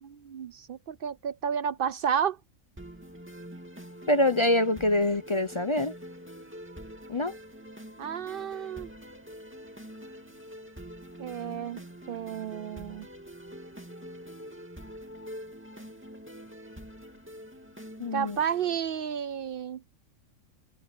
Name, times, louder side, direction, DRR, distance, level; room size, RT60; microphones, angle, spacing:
voice 1, 0.0-2.4 8.0-8.9 11.2-13.1 18.1-19.8, right 8 dB, 60° right, 0.6 m, -31 dB
sound 1, 2.8-18.8, equal, 10° right, 2.4 m, -45 dB
voice 2, 4.1-5.9 7.1-7.3 18.0-18.4, left 1 dB, 30° left, 0.5 m, -25 dB
omnidirectional pair, 1.4 m